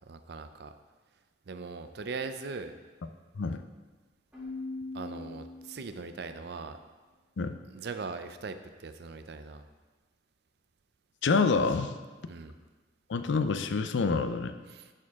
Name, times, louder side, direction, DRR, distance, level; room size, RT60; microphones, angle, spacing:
voice 1, 0.1-0.7 1.5-2.7 4.9-6.8 7.7-9.6 12.3-12.5 14.7-14.9, right 4 dB, 60° right, 9 dB, 0.5 m, -40 dB
Keyboard (musical), 4.3-6.1, left 3 dB, 5° right, 2.0 m, -41 dB
voice 2, 11.2-12.0 13.1-14.5, left 4 dB, 80° left, 9 dB, 0.5 m, -27 dB
11.0 x 4.5 x 3.6 m, 1.3 s
head